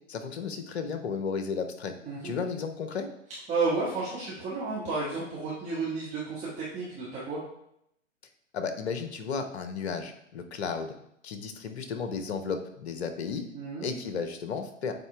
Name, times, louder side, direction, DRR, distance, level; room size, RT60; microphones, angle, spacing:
voice 1, 0.1-1.9 2.2-3.1 8.5-10.9 11.2-13.4 13.8-14.9, left 5 dB, 55° left, 8 dB, 0.9 m, -33 dB
voice 2, 2.0-2.3 3.5-7.4 13.5-13.9, right 3 dB, 20° right, -8 dB, 1.5 m, -32 dB
8.3 x 3.7 x 3.4 m, 0.75 s
figure-of-eight pair, 115°, 38 cm